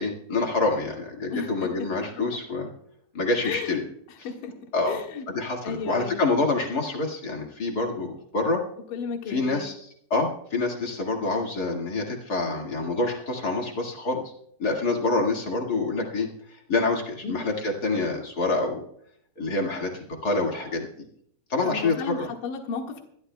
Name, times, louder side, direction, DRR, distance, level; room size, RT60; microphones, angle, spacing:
voice 1, 0.0-2.7 3.1-3.8 4.7-5.0 5.3-8.6 9.3-9.7 10.1-14.2 14.6-18.8 19.4-21.0 21.5-22.3, left 3 dB, 40° left, 0 dB, 1.4 m, -27 dB
voice 2, 1.3-1.9 2.1-2.2 3.4-3.8 4.1-4.5 4.9-5.2 5.6-6.2 8.9-9.7 17.2-17.4 21.6-23.0, left 5 dB, 60° left, 2 dB, 3.1 m, -34 dB
24.5 x 12.5 x 2.3 m, 0.69 s
omnidirectional pair, 4.7 m